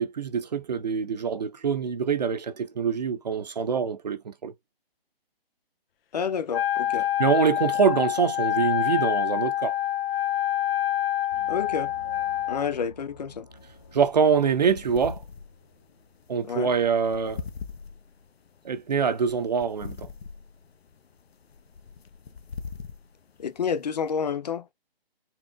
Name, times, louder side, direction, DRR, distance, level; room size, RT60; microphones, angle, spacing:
voice 1, 0.0-4.5 7.2-9.8 13.9-15.2 16.3-17.4 18.6-20.1, right 6 dB, 45° right, 0.5 m, -25 dB
voice 2, 6.1-7.1 11.5-11.9 12.5-13.5 16.5-16.7 23.4-24.7, left 7 dB, 45° left, 0.8 m, -29 dB
Wind instrument woodwind instrument, 6.5-12.7, left 12 dB, 70° left, 0.5 m, -26 dB
Gong, 11.3-16.6, left 1 dB, 20° left, 0.5 m, -50 dB
sound 1, 13.6-24.1, left 5 dB, 90° left, 0.9 m, -43 dB
4.4 x 3.5 x 2.3 m
hypercardioid pair, 165°, 30 cm